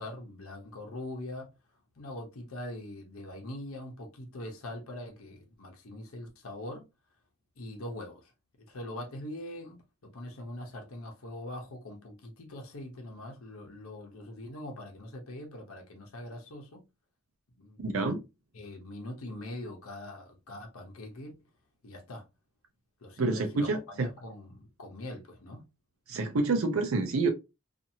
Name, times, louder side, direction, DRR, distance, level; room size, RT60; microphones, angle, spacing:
voice 1, 0.0-1.5 2.0-6.9 7.6-8.3 8.6-16.8 17.6-18.0 18.5-21.3 21.8-22.2 23.0-25.7, left 1 dB, 80° left, 0.8 m, -42 dB
voice 2, 17.8-18.2 23.2-24.1 26.1-27.3, right 3 dB, 70° right, 0.5 m, -28 dB
2.7 x 2.5 x 2.6 m
head